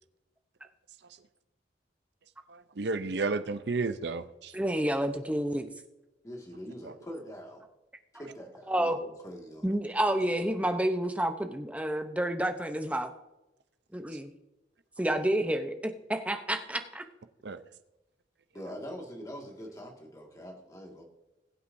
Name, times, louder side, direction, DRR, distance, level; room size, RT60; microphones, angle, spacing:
voice 1, 2.5-4.5 17.4-17.6, right 3 dB, 60° right, 11 dB, 0.6 m, -32 dB
voice 2, 4.5-5.7 8.7-9.0 9.6-13.1 13.9-14.3 15.0-17.0, right 1 dB, 5° right, 7 dB, 0.7 m, -29 dB
voice 3, 6.2-7.6 8.1-9.8 18.5-21.0, equal, 20° left, 1 dB, 1.9 m, -44 dB
20.5 x 8.4 x 2.7 m, 0.99 s
head